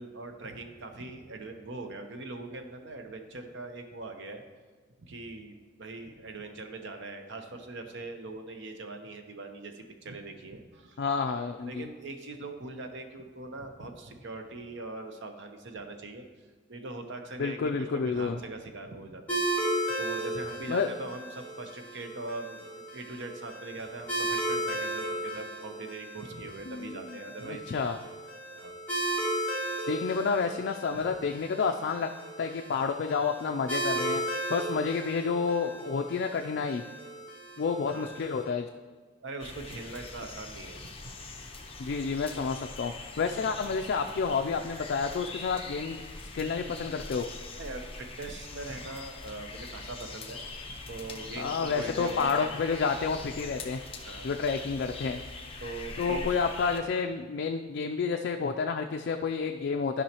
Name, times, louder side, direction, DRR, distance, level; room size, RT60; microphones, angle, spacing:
voice 1, 0.0-4.4 5.1-11.0 11.6-16.3 16.7-19.4 20.0-27.7 28.5-28.7 37.9-38.2 39.2-41.1 47.6-50.4 50.7-52.5 53.9-54.4 55.6-56.4, right 2 dB, 65° right, 5 dB, 0.8 m, -41 dB
voice 2, 11.0-11.9 17.4-18.4 20.7-20.9 26.7-28.0 29.9-32.1 32.4-36.8 37.6-38.7 41.8-46.0 46.3-47.2 51.4-53.8 54.2-55.2 56.0-60.0, left 5 dB, 55° left, 4 dB, 0.4 m, -30 dB
sound 1, 19.3-38.4, right 1 dB, 10° left, 2.0 m, -35 dB
sound 2, 39.4-56.8, left 3 dB, 30° left, 0.8 m, -42 dB
12.5 x 5.4 x 2.9 m, 1.4 s
head